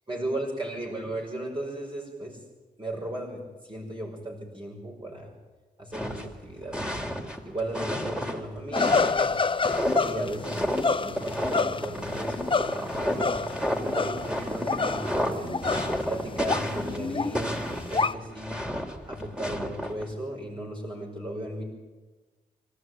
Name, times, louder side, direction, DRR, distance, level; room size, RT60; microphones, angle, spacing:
voice 1, 0.1-2.4 2.8-5.4 5.8-7.1 7.5-9.4 10.0-10.6 10.9-15.6 16.1-18.7 19.1-21.6, right 1 dB, 30° right, -1 dB, 5.6 m, -36 dB
sound 1, 5.9-8.4 8.7-17.1 17.3-20.0, equal, 5° right, 3.4 m, -31 dB
sound 2, 8.7-14.3 14.6-16.2 16.5-18.1, left 4 dB, 35° left, 0.8 m, -28 dB
sound 3, 9.8-17.9, right 2 dB, 50° right, 4.5 m, -44 dB
25.0 x 14.5 x 9.5 m, 1.2 s
cardioid pair, 70°, 16 cm